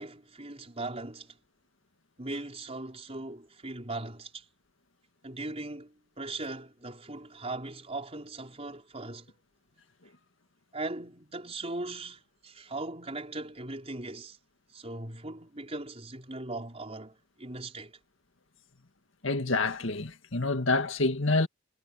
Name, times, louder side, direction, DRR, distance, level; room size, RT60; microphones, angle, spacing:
voice 1, 0.0-1.4 2.2-4.4 5.2-9.3 10.7-14.4 14.7-18.0, right 2 dB, 30° right, 5.2 m, -39 dB
voice 2, 19.2-21.5, left 3 dB, 70° left, 2.0 m, -27 dB
head